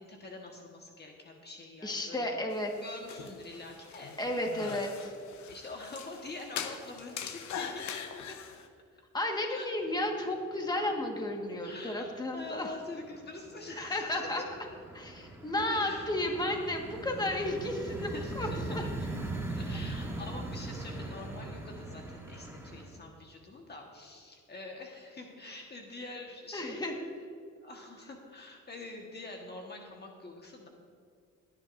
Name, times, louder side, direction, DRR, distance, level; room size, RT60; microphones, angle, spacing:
voice 1, 0.0-2.3 2.8-4.3 4.6-4.8 5.5-8.4 9.5-9.7 11.6-14.3 15.7-16.0 17.9-18.8 19.5-26.9 27.6-30.7, left 2 dB, 35° left, 1 dB, 1.4 m, -45 dB
voice 2, 1.8-2.7 4.2-4.9 9.1-12.7 13.8-14.4 14.9-18.9 26.5-26.9, left 1 dB, 15° left, 2 dB, 1.6 m, -33 dB
sound 1, 2.5-8.7, left 7 dB, 70° left, 1.0 m, -42 dB
sound 2, 9.9-10.5 10.7-11.5 11.9-23.0, right 2 dB, 10° right, 1.8 m, -40 dB
19.5 x 10.0 x 2.6 m, 2.3 s
cardioid pair, 90°, 30 cm